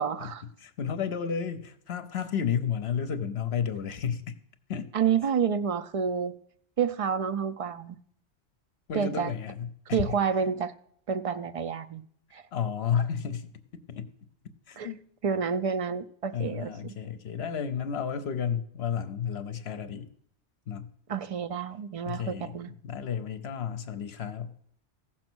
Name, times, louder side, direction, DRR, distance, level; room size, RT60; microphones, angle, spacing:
voice 1, 0.0-0.4 4.9-6.4 6.8-8.0 8.9-9.3 9.9-10.7 11.1-12.0 12.3-12.4 14.8-14.9 15.2-16.9 21.1-22.7, right 7 dB, 55° right, 9 dB, 0.4 m, -29 dB
voice 2, 0.6-4.3 4.7-4.9 8.9-10.2 12.5-13.5 13.9-14.1 14.7-15.0 16.3-20.1 20.7-20.9 22.1-24.5, left 7 dB, 65° left, 11 dB, 0.9 m, -32 dB
15.5 x 6.1 x 6.1 m, 0.65 s
omnidirectional pair, 1.2 m